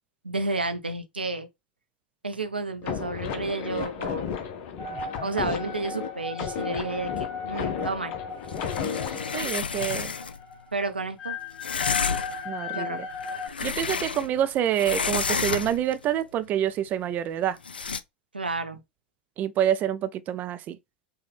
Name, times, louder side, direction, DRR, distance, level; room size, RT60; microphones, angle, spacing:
voice 1, 0.2-1.5 2.2-4.3 5.2-8.1 10.7-11.4 12.7-13.0 18.3-18.8, right 3 dB, 85° right, 0.6 m, -31 dB
sound 1, 2.8-9.5, left 7 dB, 45° left, 0.8 m, -33 dB
sound 2, 4.8-13.5, left 5 dB, 25° left, 1.4 m, -36 dB
sound 3, 8.5-10.4 11.6-12.5 13.1-14.5 14.7-15.9 17.6-18.0, left 5 dB, 80° left, 0.3 m, -30 dB
voice 2, 9.3-10.1 12.5-13.1 13.6-17.6 19.4-20.8, right 10 dB, 35° right, 0.4 m, -27 dB
4.9 x 2.3 x 3.3 m
figure-of-eight pair, 90°, 5 cm